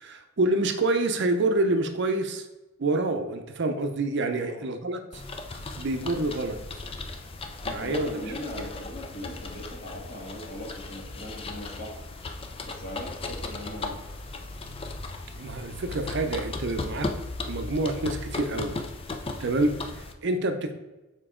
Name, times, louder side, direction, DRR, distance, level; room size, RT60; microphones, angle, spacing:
voice 1, 0.0-2.4 2.8-5.2 5.8-6.6 7.6-8.2 8.6-8.7 15.4-17.1 17.5-18.8 19.4-20.7, right 2 dB, 60° right, 6 dB, 0.6 m, -27 dB
voice 2, 4.1-4.6 7.6-12.0 12.6-14.0, left 1 dB, 45° left, -2 dB, 1.7 m, -39 dB
sound 1, 5.1-20.1, left 3 dB, 25° left, 0.5 m, -36 dB
6.9 x 4.6 x 3.7 m, 1.1 s
head